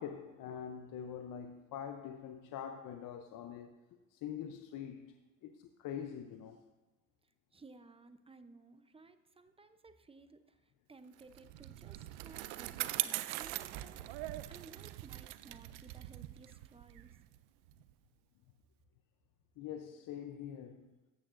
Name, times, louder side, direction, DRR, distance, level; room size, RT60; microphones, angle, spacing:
voice 1, 0.0-3.7 4.1-6.6 19.6-20.9, left 8 dB, 60° left, 0.7 m, -44 dB
voice 2, 7.5-10.6 10.9-14.1 14.5-17.2, right 3 dB, 15° right, 0.7 m, -57 dB
Bicycle, 11.2-17.9, right 16 dB, 85° right, 0.5 m, -42 dB
14.0 x 8.6 x 2.6 m
supercardioid pair, 85°, 36 cm